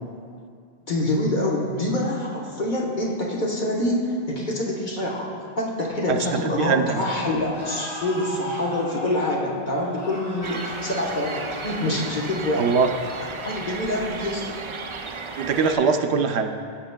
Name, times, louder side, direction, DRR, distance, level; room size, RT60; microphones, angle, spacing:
voice 1, 0.9-5.3 5.6-12.7 13.4-14.5, left 1 dB, 50° left, -4 dB, 1.1 m, -26 dB
voice 2, 6.1-7.0 12.6-12.9 15.4-16.5, right 5 dB, 90° right, 6 dB, 0.8 m, -22 dB
sound 1, 7.5-14.0, left 1 dB, 85° left, 2.4 m, -38 dB
sound 2, 10.4-15.7, right 4 dB, 55° right, 0.3 m, -34 dB
14.0 x 7.5 x 2.2 m, 2.3 s
omnidirectional pair, 1.1 m